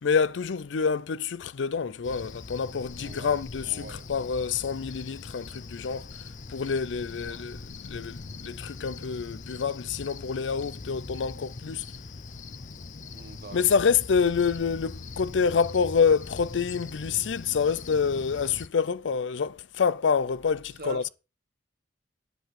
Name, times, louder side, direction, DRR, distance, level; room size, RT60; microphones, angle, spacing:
voice 1, 0.0-11.9 13.5-21.1, left 6 dB, 85° left, 0.5 m, -27 dB
Cricket, 2.0-18.7, left 3 dB, 45° left, 0.6 m, -42 dB
voice 2, 3.0-4.1 7.1-7.5 13.1-13.7 20.8-21.1, right 2 dB, 55° right, 1.5 m, -43 dB
10.5 x 5.2 x 7.6 m
head